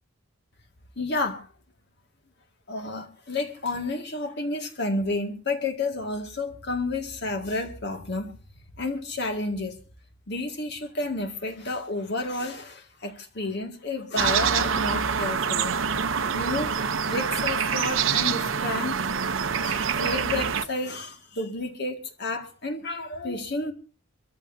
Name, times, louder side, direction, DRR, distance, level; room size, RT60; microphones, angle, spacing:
voice 1, 1.0-1.5 2.7-8.3 8.8-9.8 10.3-15.8 16.2-16.8 17.1-19.0 19.6-23.7, left 2 dB, 55° left, 2.0 m, -31 dB
sound 1, 14.2-20.6, right 6 dB, 70° right, 0.8 m, -26 dB
25.0 x 14.5 x 2.7 m
head